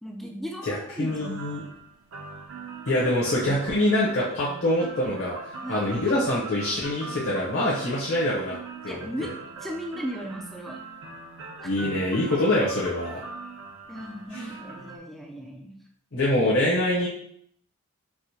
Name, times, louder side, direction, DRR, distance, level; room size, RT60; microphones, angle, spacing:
voice 1, 0.0-1.5 2.9-3.6 5.6-6.0 8.9-10.8 11.6-11.7 13.9-15.9, equal, ahead, 0 dB, 0.3 m, -37 dB
voice 2, 0.7-1.6 2.9-8.6 8.8-9.0 11.6-13.2 14.3-14.4 16.1-17.1, left 1 dB, 60° left, -7 dB, 0.9 m, -25 dB
sound 1, 1.1-15.0, right 4 dB, 65° right, 0.6 m, -41 dB
4.7 x 2.1 x 2.8 m, 0.67 s
head